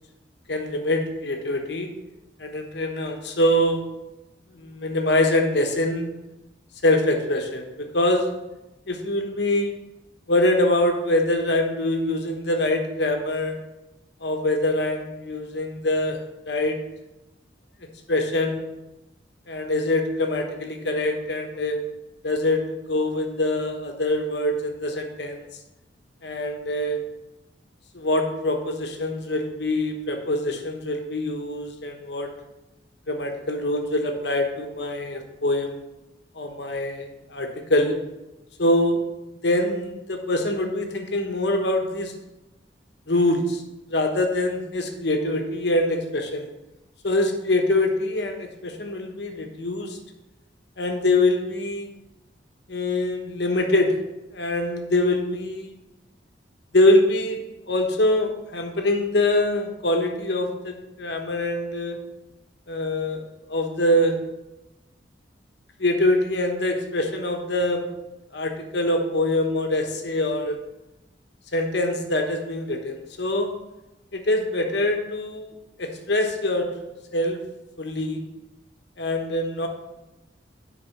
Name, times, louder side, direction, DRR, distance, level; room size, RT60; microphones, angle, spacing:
voice 1, 0.5-1.9 2.4-3.9 4.5-6.1 6.8-8.4 8.9-9.7 10.3-13.6 14.2-16.2 16.5-16.8 18.1-18.6 19.5-21.8 22.2-25.5 26.2-27.0 27.9-32.3 33.1-35.8 36.3-38.0 38.6-39.0 39.4-42.1 43.1-43.6 43.9-46.5 47.0-50.0 50.8-51.9 52.7-54.0 54.3-55.7 56.7-57.4 57.7-62.0 62.7-63.2 63.5-64.2 65.8-67.9 68.3-70.6 71.5-73.5 74.1-75.5 75.8-76.7 77.1-77.4 77.8-78.2 79.0-79.7, left 1 dB, 70° left, 3 dB, 1.1 m, -24 dB
10.0 x 4.7 x 5.8 m, 0.99 s
head